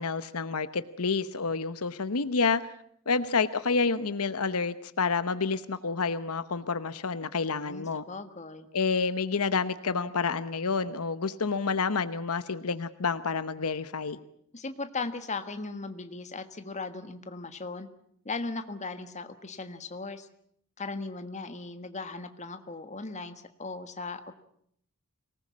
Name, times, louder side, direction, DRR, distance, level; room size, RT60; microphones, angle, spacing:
voice 1, 0.0-2.7 3.1-8.0 8.7-14.2, left 4 dB, 75° left, 13 dB, 0.9 m, -29 dB
voice 2, 7.5-8.7 14.5-17.9 18.2-20.3 20.8-24.4, left 3 dB, 30° left, 9 dB, 1.5 m, -38 dB
24.0 x 19.0 x 8.5 m, 0.69 s
head